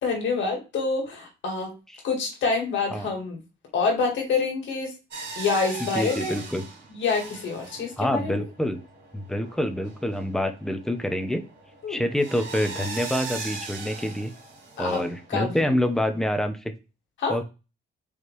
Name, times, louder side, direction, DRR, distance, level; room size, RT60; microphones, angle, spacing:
voice 1, 0.0-1.7 2.0-3.4 3.7-4.9 5.4-6.4 6.9-8.3 11.8-12.0 14.8-15.0 15.3-15.6 17.2-17.5, left 4 dB, 70° left, 1 dB, 1.9 m, -27 dB
sound 1, 5.1-16.2, right 3 dB, 60° right, 2.6 m, -40 dB
voice 2, 5.9-6.6 8.0-8.8 9.1-11.4 11.9-14.3 14.8-16.6 17.3-17.5, left 1 dB, ahead, 8 dB, 0.7 m, -26 dB
4.2 x 3.4 x 3.1 m, 0.29 s
cardioid pair, 90°, 20 cm